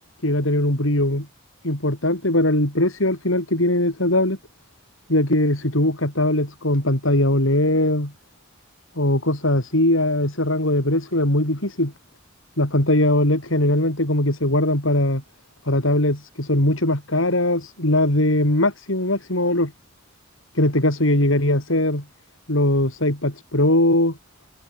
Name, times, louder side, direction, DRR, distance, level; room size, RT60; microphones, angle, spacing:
voice 1, 0.2-1.3 1.6-4.4 5.1-8.1 9.0-11.9 12.6-15.2 15.7-19.7 20.5-22.0 22.5-24.2, left 1 dB, 85° left, 6.0 m, -20 dB
head